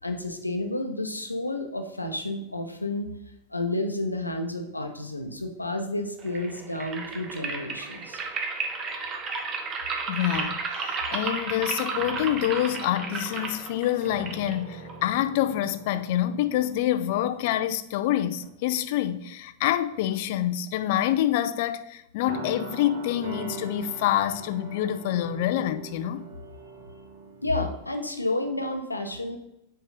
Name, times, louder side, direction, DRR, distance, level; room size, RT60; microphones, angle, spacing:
voice 1, 0.0-3.1 3.5-8.2 27.4-29.4, left 2 dB, 85° left, 0.8 m, -30 dB
sound 1, 6.2-15.2, right 4 dB, 30° right, 1.0 m, -33 dB
voice 2, 10.1-26.3, left 12 dB, 50° left, 0.5 m, -27 dB
sound 2, 11.9-18.1 18.4-18.7 19.6-20.4 22.3-27.5, right 3 dB, 60° right, 1.4 m, -43 dB
5.3 x 4.8 x 5.1 m
figure-of-eight pair, 90°, 0 cm